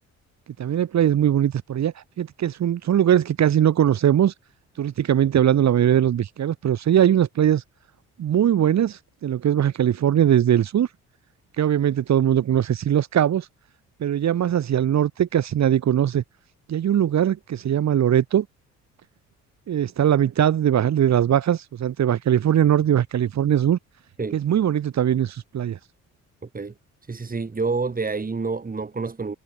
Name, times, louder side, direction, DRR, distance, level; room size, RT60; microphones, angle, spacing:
voice 1, 0.6-4.3 4.8-7.6 8.2-10.9 11.6-13.5 14.0-16.2 16.7-18.5 19.7-23.8 24.3-25.8, right 10 dB, 65° right, 4.0 m, -20 dB
voice 2, 26.4-26.7 27.1-29.4, right 4 dB, 30° right, 7.8 m, -28 dB
cardioid pair, 90°, 30 cm